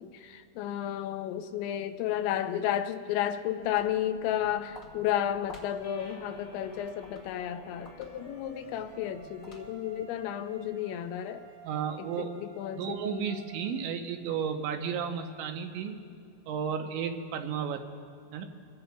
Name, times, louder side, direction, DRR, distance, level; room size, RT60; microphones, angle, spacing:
voice 1, 0.0-11.4 12.0-13.4, left 11 dB, 85° left, 9 dB, 3.0 m, -32 dB
Walk footsteps, 3.5-10.0, left 2 dB, 65° left, 0.8 m, -54 dB
sound 1, 5.8-12.1, left 2 dB, 30° left, 1.4 m, -54 dB
sound 2, 8.0-13.8, right 4 dB, 55° right, 2.6 m, -52 dB
voice 2, 11.6-12.3 12.7-16.0 16.5-17.8 18.3-18.5, right 7 dB, 80° right, 5 dB, 3.2 m, -33 dB
25.0 x 16.5 x 2.3 m, 2.3 s
omnidirectional pair, 5.2 m